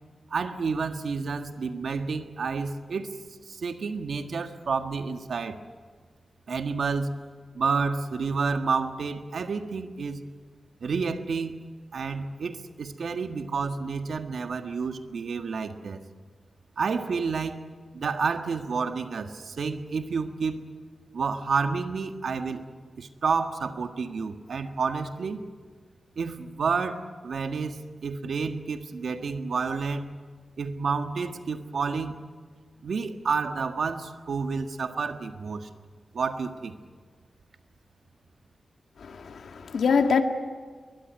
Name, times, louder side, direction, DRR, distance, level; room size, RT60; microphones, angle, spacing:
voice 1, 0.3-3.1 3.5-5.6 6.5-7.2 7.5-10.2 10.8-11.6 11.9-16.0 16.8-17.6 17.9-20.6 21.1-22.6 23.0-25.4 26.2-30.1 30.6-32.2 32.8-35.7 36.1-36.7, right 5 dB, 70° right, 6 dB, 1.6 m, -30 dB
voice 2, 39.0-40.2, left 5 dB, 90° left, 5 dB, 2.0 m, -24 dB
22.5 x 21.5 x 9.6 m, 1.5 s
wide cardioid pair, 165°, 0 cm